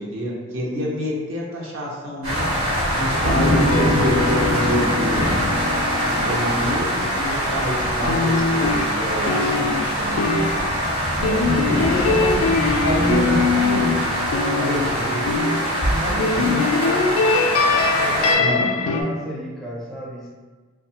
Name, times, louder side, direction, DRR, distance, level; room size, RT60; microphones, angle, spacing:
voice 1, 0.0-2.5 2.9-5.3 6.0-10.5 11.2-12.3 12.8-13.9 14.6-15.3 16.0-16.6 18.4-18.6, equal, 65° right, -4 dB, 0.6 m, -27 dB
sound 1, 2.2-18.3, equal, 80° right, 1.1 m, -23 dB
sound 2, 3.3-7.6 8.1-15.8 16.2-19.0, left 3 dB, 75° left, 0.3 m, -23 dB
voice 2, 11.8-13.2 14.7-15.1 15.9-17.0 18.0-20.3, equal, ahead, -7 dB, 0.4 m, -33 dB
2.6 x 2.2 x 2.8 m, 1.4 s
head